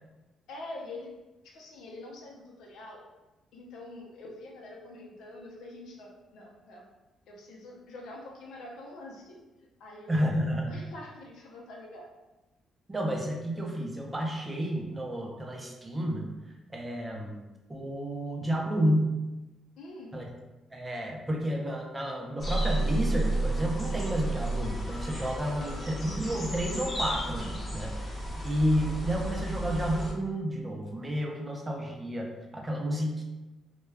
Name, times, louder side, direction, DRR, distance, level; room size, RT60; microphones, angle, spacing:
voice 1, 0.5-1.1 1.4-3.0 3.5-6.8 7.3-9.4 9.8-10.2 10.7-12.1 19.8-20.1 25.4-25.9, left 2 dB, 85° left, -1 dB, 0.6 m, -45 dB
voice 2, 10.1-10.8 12.9-16.3 16.7-17.4 17.7-19.2 20.1-20.2 20.7-33.2, equal, 20° right, 0 dB, 0.5 m, -31 dB
sound 1, 22.4-30.1, right 1 dB, 30° left, 1.0 m, -32 dB
2.2 x 2.2 x 3.3 m, 1.1 s
cardioid pair, 90°, 0 cm